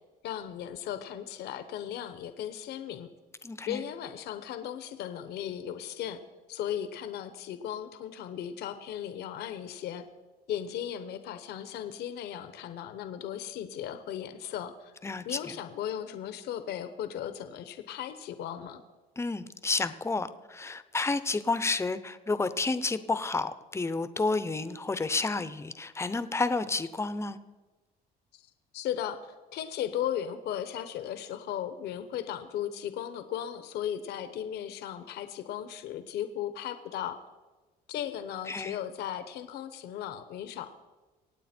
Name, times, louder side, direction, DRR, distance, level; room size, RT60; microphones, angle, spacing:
voice 1, 0.2-3.1 3.7-6.2 6.5-10.0 10.5-14.9 15.2-18.8 28.3-37.2 37.9-40.7, left 10 dB, 75° left, 10 dB, 1.0 m, -36 dB
voice 2, 3.4-3.8 15.0-15.5 19.2-27.4 38.5-38.8, left 3 dB, 15° left, 13 dB, 0.8 m, -30 dB
24.0 x 9.0 x 4.4 m, 1.2 s
cardioid pair, 110°, 17 cm